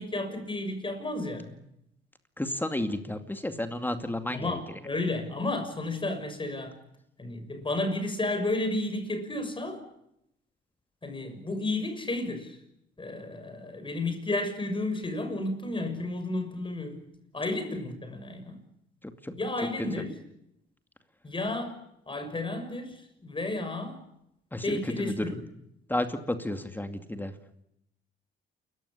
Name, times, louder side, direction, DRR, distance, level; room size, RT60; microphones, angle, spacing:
voice 1, 0.0-1.6 4.3-6.8 7.2-9.8 11.0-12.6 13.0-17.0 17.3-18.6 19.4-20.1 21.2-21.7 22.1-24.0 24.6-25.3, left 2 dB, 25° left, 6.4 m, -32 dB
voice 2, 2.4-4.8 19.0-19.3 19.8-19.9 24.5-25.4 25.9-27.4, left 1 dB, 10° left, 2.4 m, -32 dB
29.0 x 15.0 x 10.0 m
cardioid pair, 90°, 20 cm